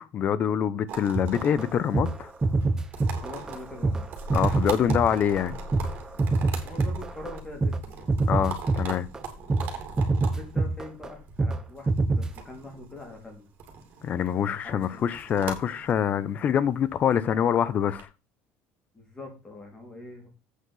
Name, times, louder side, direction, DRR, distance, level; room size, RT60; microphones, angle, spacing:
voice 1, 0.0-2.3 4.3-5.6 8.3-9.1 14.0-18.1, left 9 dB, 35° left, 0.8 m, -25 dB
sound 1, 0.9-18.0, right 5 dB, 45° right, 3.0 m, -41 dB
sound 2, 1.1-7.8 8.1-9.2 9.5-9.7 10.0-11.1 11.4-11.6 11.9-12.3, right 3 dB, 15° right, 0.9 m, -25 dB
voice 2, 3.2-4.1 6.6-8.1 10.2-13.5 14.6-15.2 18.9-20.3, left 2 dB, 15° left, 3.6 m, -43 dB
8.4 x 5.8 x 6.4 m
cardioid pair, 155°, 4 cm